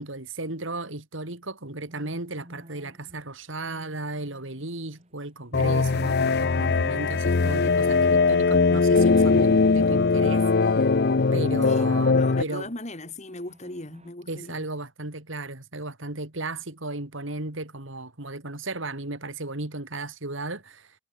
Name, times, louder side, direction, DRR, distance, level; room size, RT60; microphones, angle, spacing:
voice 1, 0.0-10.4 10.7-10.8 11.3-12.7 14.3-20.9, right 2 dB, 65° right, 3.1 m, -35 dB
sound 1, 1.9-6.7 7.0-8.6 8.9-9.1 9.4-12.9 13.3-14.1, equal, 30° right, 6.6 m, -56 dB
sound 2, 5.5-12.4, left 4 dB, 50° left, 0.6 m, -21 dB
voice 2, 11.6-14.7, left 2 dB, 35° left, 2.6 m, -38 dB
head